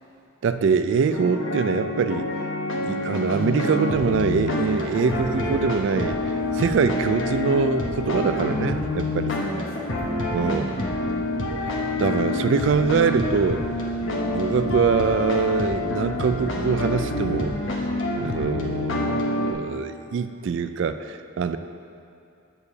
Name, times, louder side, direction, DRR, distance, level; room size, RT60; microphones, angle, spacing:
voice 1, 0.4-2.3 2.8-9.4 10.3-10.8 11.6-11.7 12.0-13.6 14.2-17.5 18.2-21.6, right 5 dB, 60° right, 10 dB, 0.3 m, -24 dB
sound 1, 1.1-19.5, left 2 dB, 70° left, 1.0 m, -27 dB
voice 2, 9.4-11.4, equal, 25° right, -6 dB, 1.5 m, -35 dB
6.7 x 4.7 x 6.9 m, 2.6 s
head